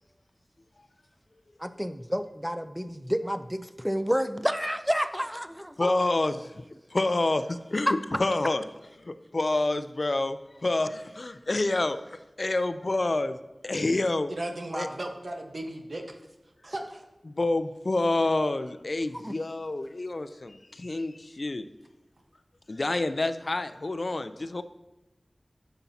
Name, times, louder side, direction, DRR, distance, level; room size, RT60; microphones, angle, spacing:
voice 1, 1.6-5.9 7.9-8.0 19.1-19.4, equal, 5° right, 11 dB, 0.4 m, -29 dB
voice 2, 5.8-6.5 6.9-8.6 9.0-12.0 12.4-13.4 13.6-14.3 14.7-14.9 17.3-21.7 22.7-24.6, left 2 dB, 60° left, 11 dB, 0.4 m, -28 dB
voice 3, 14.3-16.2 16.6-17.1, right 1 dB, 70° right, 3 dB, 1.1 m, -35 dB
11.0 x 7.0 x 2.8 m, 1.0 s
wide cardioid pair, 55°, 0 cm